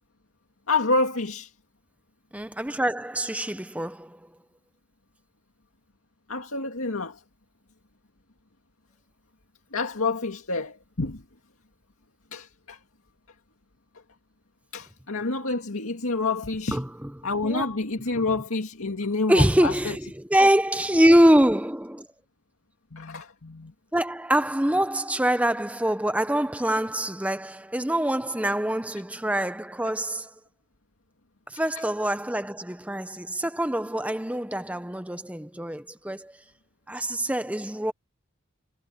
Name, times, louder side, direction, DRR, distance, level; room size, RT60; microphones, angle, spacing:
voice 1, 0.7-1.5 6.3-7.2 9.7-11.2 12.3-12.8 14.7-16.8 17.2-19.9 22.9-23.7, left 3 dB, 80° left, 2.2 m, -28 dB
voice 2, 2.3-4.2 16.7-17.1 17.4-17.7 18.2-18.3 19.3-22.1 23.9-30.3 31.5-36.3 36.9-37.9, right 1 dB, 5° right, 0.7 m, -24 dB
head